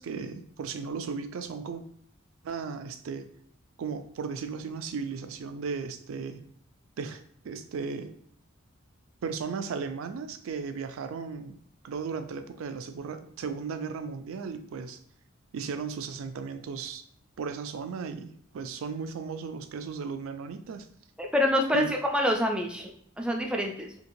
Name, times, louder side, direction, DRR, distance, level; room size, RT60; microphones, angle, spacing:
voice 1, 0.0-1.8 2.4-3.3 3.8-6.4 7.0-8.1 9.2-11.6 11.8-15.0 15.5-17.0 17.4-20.9 21.7-21.9, right 5 dB, 80° right, 9 dB, 0.4 m, -35 dB
voice 2, 21.2-23.9, left 1 dB, 5° right, 1 dB, 0.3 m, -27 dB
2.9 x 2.8 x 2.6 m, 0.66 s
head